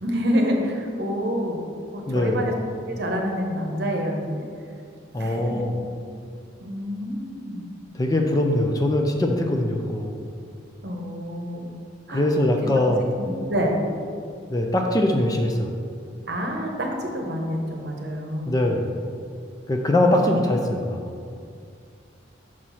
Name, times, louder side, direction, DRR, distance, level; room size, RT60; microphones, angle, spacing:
voice 1, 0.0-1.6 1.9-2.5 2.8-4.4 5.2-5.6 6.6-7.7 10.8-11.7 12.1-12.2 12.6-12.7 13.2-13.8 16.3-18.6 20.2-20.6, equal, 55° right, 1 dB, 0.9 m, -27 dB
voice 2, 2.1-2.4 5.1-5.7 7.9-10.1 12.1-13.1 14.5-15.7 18.5-18.9 19.7-21.1, left 1 dB, 20° left, 2 dB, 0.4 m, -22 dB
6.3 x 4.5 x 5.6 m, 2.3 s
head